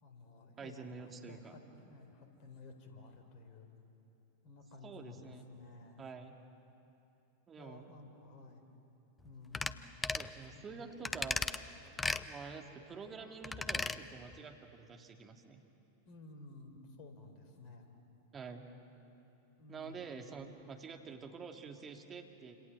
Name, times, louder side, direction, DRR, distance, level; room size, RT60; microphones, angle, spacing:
voice 1, 0.0-3.7 4.4-6.0 7.6-8.7 9.2-9.8 10.5-10.7 16.1-17.9 19.6-20.0, left 3 dB, 40° left, 6 dB, 4.3 m, -54 dB
voice 2, 0.6-1.5 4.8-5.5 6.0-6.3 7.5-7.9 10.1-11.4 12.2-15.6 18.3-18.7 19.7-22.6, right 5 dB, 20° right, 3 dB, 2.7 m, -48 dB
sound 1, 9.5-9.8 10.0-10.3 11.1-11.6 12.0-12.2 13.4-14.0 14.3-14.4, left 3 dB, 10° left, 0.8 m, -35 dB
29.5 x 27.0 x 7.3 m, 2.8 s
figure-of-eight pair, 90°, 0 cm